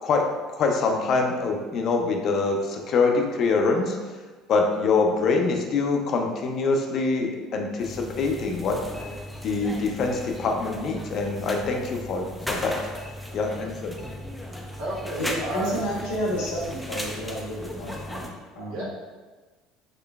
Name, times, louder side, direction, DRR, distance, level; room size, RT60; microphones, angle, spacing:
voice 1, 0.6-4.0 4.5-8.8 9.4-12.8 13.3-13.9, left 4 dB, 50° left, 2 dB, 0.5 m, -24 dB
sound 1, 7.8-18.3, left 1 dB, ahead, 0.4 m, -37 dB
voice 2, 14.3-15.8 18.7-18.8, right 2 dB, 80° right, -6 dB, 1.2 m, -34 dB
voice 3, 15.2-18.8, equal, 90° left, -4 dB, 1.2 m, -30 dB
3.7 x 3.1 x 2.4 m, 1.3 s
cardioid pair, 115°, 0 cm